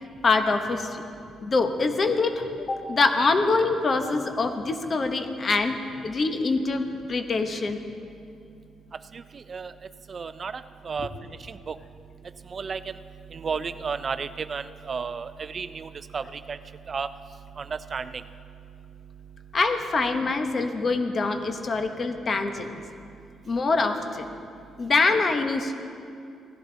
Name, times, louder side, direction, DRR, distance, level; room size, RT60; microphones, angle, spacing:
voice 1, 0.2-1.0 1.4-5.8 6.0-6.8 7.1-7.8 19.5-22.7 23.5-24.3 24.8-25.7, left 3 dB, 40° left, 6 dB, 1.0 m, -24 dB
voice 2, 9.1-9.7 10.1-11.1 11.5-11.8 12.5-12.9 13.3-16.6 16.9-17.1 17.6-18.2, right 5 dB, 40° right, 13 dB, 0.3 m, -33 dB
16.0 x 11.0 x 4.0 m, 2.5 s
cardioid pair, 90°, 0 cm